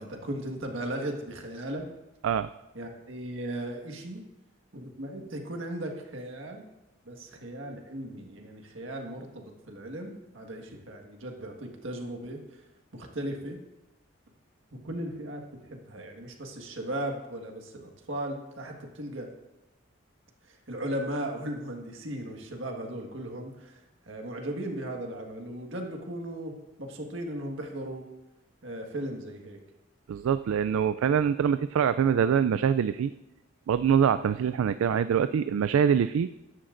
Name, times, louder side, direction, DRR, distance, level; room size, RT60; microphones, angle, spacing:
voice 1, 0.0-1.9 2.7-4.2 4.7-6.7 7.0-12.4 12.9-13.6 14.7-19.3 20.5-23.8 24.1-28.1 28.6-29.6, right 1 dB, 75° right, 2 dB, 1.6 m, -37 dB
voice 2, 30.1-33.1 33.7-36.3, right 8 dB, 90° right, 13 dB, 0.3 m, -24 dB
14.0 x 11.5 x 2.6 m, 0.98 s
head